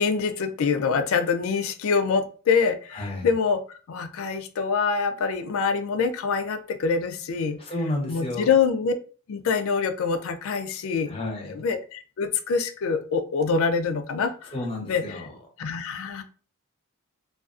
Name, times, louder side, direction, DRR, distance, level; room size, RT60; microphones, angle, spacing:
voice 1, 0.0-7.6 8.1-8.9 9.3-11.2 11.5-14.5 14.8-15.2 15.6-16.2, left 5 dB, 70° left, 9 dB, 0.4 m, -25 dB
voice 2, 2.9-3.3 7.6-8.6 11.1-11.6 14.5-15.4, left 1 dB, 25° left, 1 dB, 0.6 m, -31 dB
2.3 x 2.3 x 2.4 m, 0.38 s
head